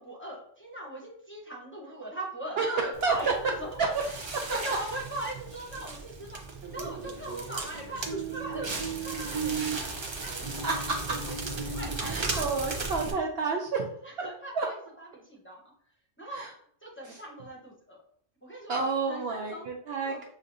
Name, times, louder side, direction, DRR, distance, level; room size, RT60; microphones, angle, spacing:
voice 1, 0.0-3.8 4.1-6.4 6.7-8.0 8.3-10.8 11.1-12.9 14.0-15.7 16.2-16.4 16.8-18.0 18.4-19.7 20.0-20.2, right 1 dB, 10° left, -4 dB, 0.9 m, -40 dB
voice 2, 2.6-3.3 4.5-4.6 10.6-11.2 12.0-13.8 14.5-14.7 16.3-16.5 17.1-17.2 18.7-20.3, right 4 dB, 65° right, 1 dB, 0.7 m, -30 dB
Crackle, 2.9-13.1, right 4 dB, 35° right, 0.4 m, -35 dB
6.4 x 2.6 x 2.6 m, 0.63 s
omnidirectional pair, 1.3 m